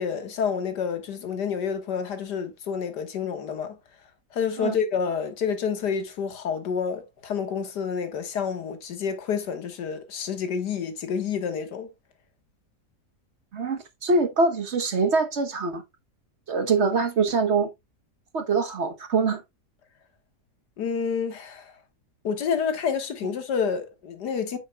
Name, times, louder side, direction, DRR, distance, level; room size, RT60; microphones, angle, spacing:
voice 1, 0.0-3.8 4.3-11.9 20.8-21.7 22.2-24.6, left 6 dB, 90° left, 2.0 m, -29 dB
voice 2, 13.5-15.8 16.5-17.7 18.3-19.4, right 4 dB, 50° right, 1.1 m, -24 dB
8.6 x 6.8 x 2.2 m
omnidirectional pair, 1.7 m